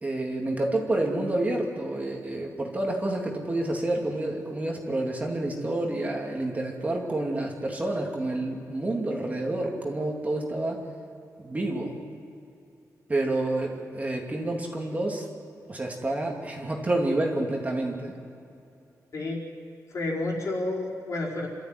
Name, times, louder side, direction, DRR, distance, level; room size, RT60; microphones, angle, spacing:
voice 1, 0.0-10.8 11.4-12.0 13.1-15.3 15.7-18.1, right 2 dB, 25° right, 0 dB, 2.7 m, -29 dB
voice 2, 19.9-21.5, left 2 dB, 55° left, -3 dB, 4.8 m, -30 dB
28.0 x 13.0 x 9.4 m, 2.6 s
wide cardioid pair, 140°, 6 cm